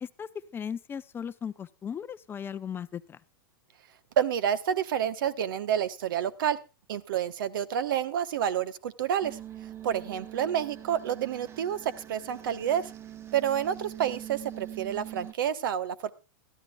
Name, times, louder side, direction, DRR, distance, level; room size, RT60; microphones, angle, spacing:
voice 1, 0.0-3.2, left 7 dB, 20° left, 13 dB, 0.6 m, -37 dB
voice 2, 4.2-6.6 6.9-9.4 9.8-12.9 13.3-16.1, right 9 dB, 70° right, 15 dB, 1.1 m, -29 dB
sound 1, 9.2-15.3, right 11 dB, 20° right, 0.7 m, -43 dB
22.5 x 13.5 x 2.3 m, 0.29 s
hypercardioid pair, 120°, 12 cm